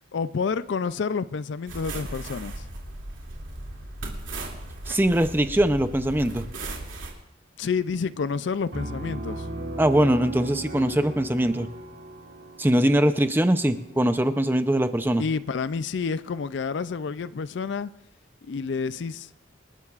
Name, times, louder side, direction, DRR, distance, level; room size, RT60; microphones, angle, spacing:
voice 1, 0.1-2.6 7.6-9.5 15.2-17.9 18.4-19.3, left 5 dB, 60° left, 0.4 m, -29 dB
sound 1, 1.7-7.1, right 2 dB, 70° right, 2.6 m, -37 dB
voice 2, 4.9-6.5 9.8-11.7 12.6-15.2, right 1 dB, 10° right, 0.5 m, -22 dB
Piano, 8.7-14.3, right 1 dB, 55° right, 2.2 m, -37 dB
27.0 x 12.5 x 2.5 m
head